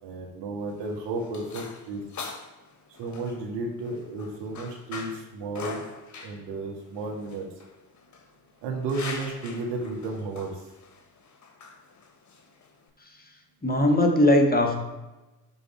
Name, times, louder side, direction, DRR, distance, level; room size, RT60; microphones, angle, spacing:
voice 1, 0.0-2.0 3.0-5.8 6.2-7.5 8.6-10.6, right 3 dB, 65° right, 0 dB, 1.9 m, -33 dB
sound 1, 0.6-12.9, left 4 dB, 40° left, 1.5 m, -43 dB
voice 2, 13.6-14.8, left 1 dB, 20° left, 3 dB, 1.6 m, -20 dB
12.0 x 4.0 x 4.5 m, 1.1 s
hypercardioid pair, 50°, 44 cm